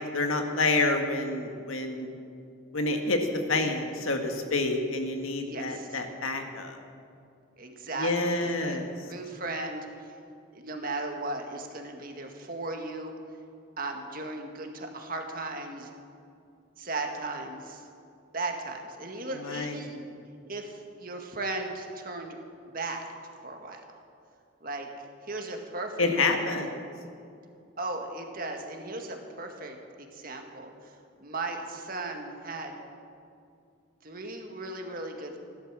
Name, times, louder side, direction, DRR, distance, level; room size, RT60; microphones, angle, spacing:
voice 1, 0.0-2.1 2.7-3.2 3.5-6.8 8.0-8.9 19.3-19.9 26.0-26.7, left 2 dB, 85° left, 4 dB, 1.8 m, -28 dB
voice 2, 5.4-5.9 7.6-8.8 9.1-9.9 10.5-13.1 13.8-15.9 16.8-17.9 18.3-20.0 20.5-22.4 22.7-23.1 23.4-23.8 24.6-24.9 25.2-26.1 26.6-26.7 27.8-32.8 34.0-35.4, right 2 dB, 45° right, 3 dB, 1.7 m, -36 dB
16.0 x 11.5 x 7.4 m, 2.5 s
head